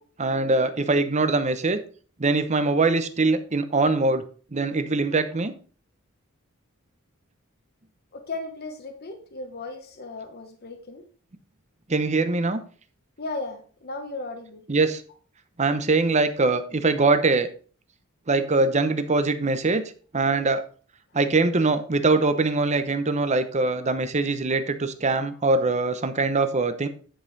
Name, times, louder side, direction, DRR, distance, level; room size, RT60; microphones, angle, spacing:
voice 1, 0.2-1.8 2.2-4.2 4.5-5.5 11.9-12.6 14.7-15.0 15.6-17.5 18.3-19.8 20.1-20.6 21.1-26.9, right 3 dB, 35° right, 10 dB, 0.8 m, -22 dB
voice 2, 8.1-11.0 13.2-14.6, left 2 dB, 50° left, 5 dB, 1.0 m, -36 dB
10.0 x 5.4 x 4.0 m, 0.42 s
head